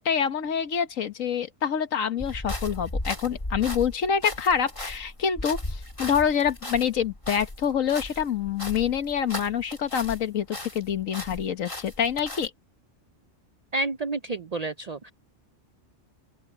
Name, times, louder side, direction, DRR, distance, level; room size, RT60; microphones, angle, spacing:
voice 1, 0.0-12.5, left 7 dB, 85° left, 1.6 m, -26 dB
sound 1, 2.2-10.3 10.5-12.5, left 1 dB, 25° left, 2.7 m, -36 dB
voice 2, 13.7-15.1, right 2 dB, 50° right, 0.5 m, -30 dB
open air
omnidirectional pair, 1.3 m